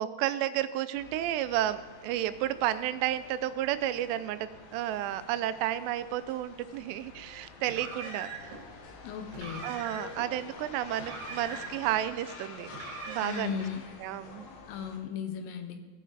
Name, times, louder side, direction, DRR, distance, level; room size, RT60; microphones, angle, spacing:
voice 1, 0.0-8.6 9.6-12.7 13.1-13.6 14.0-14.5, right 13 dB, 90° right, 13 dB, 2.7 m, -32 dB
sound 1, 0.9-15.0, left 4 dB, 65° left, 2.6 m, -48 dB
Car, 7.6-8.6 9.3-10.2 10.9-12.0 12.7-13.6, right 4 dB, 65° right, 2.7 m, -42 dB
voice 2, 9.0-9.7 13.2-13.8 14.7-15.8, left 7 dB, 85° left, 7 dB, 3.0 m, -36 dB
17.5 x 6.3 x 4.0 m, 1.4 s
omnidirectional pair, 4.8 m